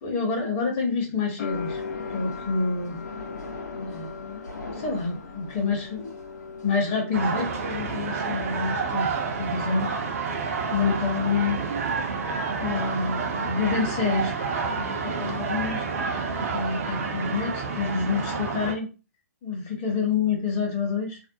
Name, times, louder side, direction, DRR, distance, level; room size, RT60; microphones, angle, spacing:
voice 1, 0.0-1.8 2.1-3.0 3.8-4.4 4.7-6.1 6.6-9.1 9.4-9.9 10.4-11.6 12.6-14.3 14.7-16.2 16.5-18.9 19.4-21.2, left 4 dB, 30° left, -1 dB, 0.9 m, -28 dB
sound 1, 1.4-8.2 8.4-9.3, left 6 dB, 60° left, 0.4 m, -40 dB
sound 2, 1.5-6.8, left 3 dB, 85° left, 0.9 m, -40 dB
sound 3, 7.1-18.7, right 5 dB, 55° right, 0.6 m, -29 dB
2.5 x 2.1 x 2.6 m, 0.32 s
hypercardioid pair, 130°, 9 cm